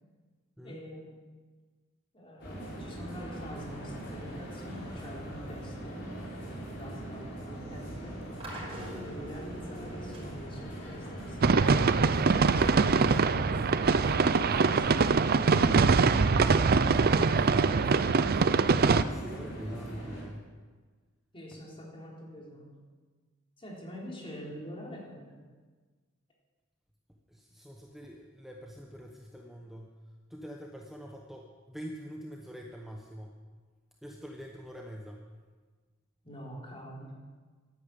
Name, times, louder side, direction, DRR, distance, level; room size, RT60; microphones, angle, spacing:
voice 1, 0.6-1.2 2.1-6.1 6.4-8.2 8.7-14.1 21.3-22.7 23.6-25.4 36.2-37.1, equal, 25° left, -3 dB, 3.8 m, -45 dB
sound 1, 2.4-20.2, right 1 dB, 60° left, 5.9 m, -41 dB
sound 2, 8.4-15.5, right 1 dB, 30° right, 5.6 m, -48 dB
sound 3, 11.4-19.0, right 4 dB, 50° right, 0.5 m, -23 dB
voice 2, 17.4-17.9 19.1-20.5 27.3-30.0 30.3-33.4 34.0-35.2, equal, ahead, 0 dB, 1.1 m, -44 dB
12.5 x 11.0 x 8.3 m, 1.4 s
head